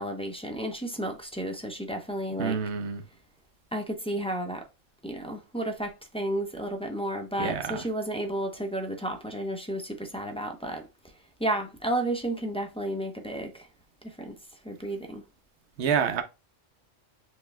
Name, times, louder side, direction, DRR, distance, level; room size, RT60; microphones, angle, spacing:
voice 1, 0.0-2.6 3.7-4.7 5.0-10.8 11.4-13.7 14.0-14.4 14.6-15.2, right 1 dB, 5° left, 0.6 m, -32 dB
voice 2, 2.4-3.0 7.4-7.8 15.8-16.2, right 7 dB, 60° right, 1.0 m, -27 dB
6.5 x 3.5 x 2.2 m
omnidirectional pair, 1.3 m